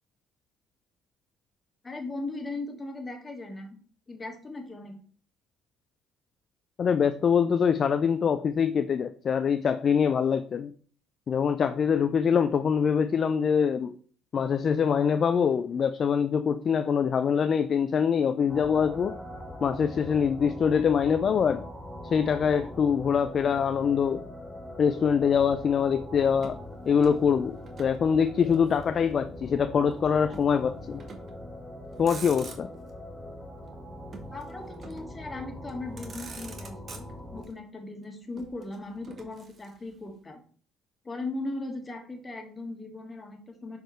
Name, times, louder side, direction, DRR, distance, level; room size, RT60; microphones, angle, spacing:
voice 1, 1.8-3.8 4.1-5.0 34.3-40.4 41.0-43.8, left 2 dB, 30° left, 4 dB, 1.7 m, -38 dB
voice 2, 6.8-10.7 11.3-14.0 14.3-19.2 19.6-21.6 22.0-24.2 24.8-26.6 26.9-31.0 32.0-32.7, left 7 dB, 50° left, 10 dB, 0.4 m, -24 dB
sound 1, 18.5-37.4, left 1 dB, 5° left, 2.8 m, -42 dB
Motor vehicle (road), 26.4-28.0 28.3-29.3 30.3-30.6 31.0-31.4 31.9-32.9 34.1-35.2 35.7-35.8 36.0-37.5 38.4-40.0, right 4 dB, 45° right, 1.2 m, -46 dB
6.4 x 4.7 x 3.2 m, 0.44 s
hypercardioid pair, 60°, 0 cm